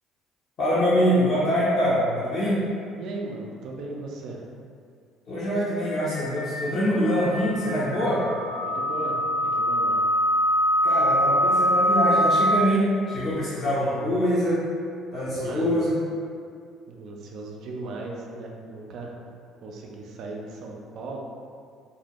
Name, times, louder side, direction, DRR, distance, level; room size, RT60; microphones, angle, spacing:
voice 1, 0.6-2.6 5.3-8.2 10.8-14.6 15.1-15.9, equal, 55° left, -10 dB, 0.7 m, -24 dB
voice 2, 3.0-4.4 8.6-10.0 15.3-15.8 16.9-19.2 19.6-21.2, right 2 dB, 60° right, 0 dB, 0.4 m, -37 dB
sound 1, 6.0-12.6, equal, 85° left, 0.8 m, -24 dB
2.4 x 2.0 x 2.9 m, 2.3 s
hypercardioid pair, 55°, 0 cm